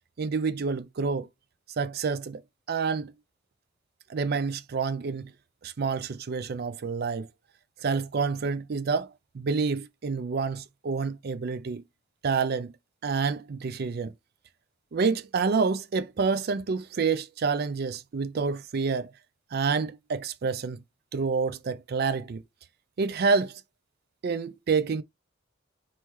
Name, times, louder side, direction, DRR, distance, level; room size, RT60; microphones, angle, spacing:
voice 1, 0.2-1.3 1.8-2.4 2.7-3.1 4.1-5.3 5.6-7.3 7.8-9.1 9.3-11.8 12.2-12.7 13.0-14.1 14.9-19.1 19.5-20.8 21.1-22.4 23.0-23.6 24.2-25.0, right 5 dB, 50° right, 0.4 m, -28 dB
4.3 x 3.6 x 3.0 m
head